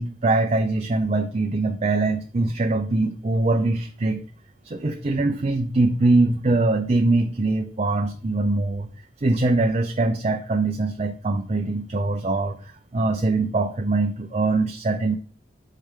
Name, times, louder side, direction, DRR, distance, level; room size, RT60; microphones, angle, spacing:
voice 1, 0.0-4.2 4.6-8.9 9.2-15.2, right 2 dB, 40° right, 4 dB, 0.5 m, -22 dB
8.7 x 4.6 x 3.7 m, 0.41 s
head